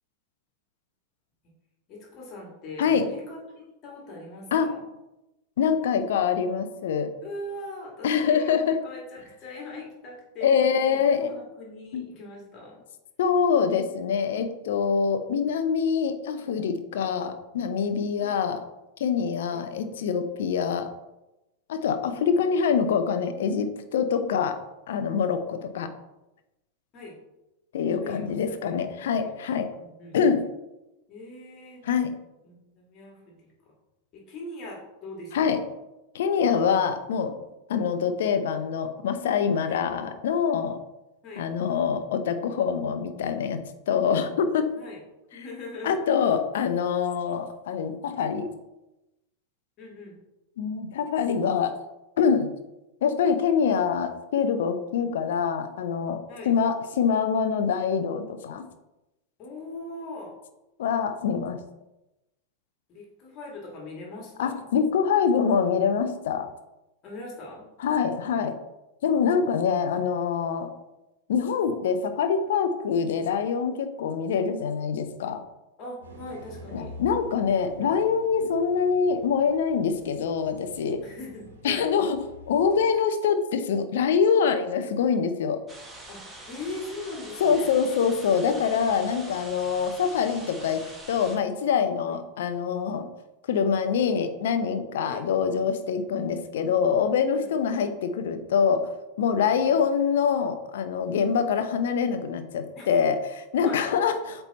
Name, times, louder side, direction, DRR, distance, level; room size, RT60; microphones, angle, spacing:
voice 1, 1.9-4.8 7.2-10.5 10.9-12.8 18.2-18.4 19.5-19.6 26.9-27.2 28.0-29.3 29.8-30.2 31.1-31.9 32.4-33.5 34.1-35.6 39.7-39.8 41.2-41.4 44.8-45.0 45.3-46.0 49.8-50.2 56.3-56.5 59.4-60.3 62.9-64.7 67.0-67.7 75.8-76.9 81.0-81.9 86.1-86.2 86.5-87.7 92.1-92.2 95.0-95.2 97.3-97.8 99.4-99.8 102.8-103.0 103.6-103.9, left 2 dB, 35° left, -2 dB, 1.9 m, -41 dB
voice 2, 5.6-7.1 8.0-8.8 10.4-11.3 11.9-12.0 13.2-18.6 19.0-20.9 21.7-24.6 24.9-25.9 27.7-29.7 30.1-30.5 31.8-32.1 35.3-35.6 36.1-37.3 37.7-40.8 41.4-44.7 45.8-48.5 50.6-51.7 52.2-52.5 53.0-56.2 56.5-58.7 60.8-61.6 64.4-66.5 67.8-68.6 69.0-70.7 71.3-75.4 76.7-81.0 81.6-82.2 82.5-85.6 87.4-93.1 93.5-98.9 99.2-104.4, left 6 dB, 60° left, 9 dB, 0.7 m, -25 dB
sound 1, 76.0-82.8, equal, 65° right, 1.4 m, -46 dB
sound 2, 85.7-91.4, right 1 dB, 10° right, 1.4 m, -44 dB
8.1 x 3.4 x 4.1 m, 0.97 s
figure-of-eight pair, 90°, 0 cm